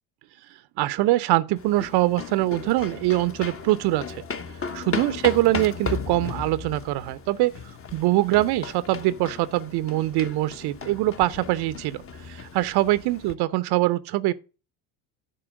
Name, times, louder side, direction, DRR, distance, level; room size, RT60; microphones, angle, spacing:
voice 1, 0.8-4.2 4.7-14.3, right 17 dB, 50° right, 0.6 m, -23 dB
sound 1, 1.6-13.3, left 5 dB, 25° left, 1.0 m, -36 dB
10.0 x 4.3 x 6.3 m
hypercardioid pair, 70°, 50 cm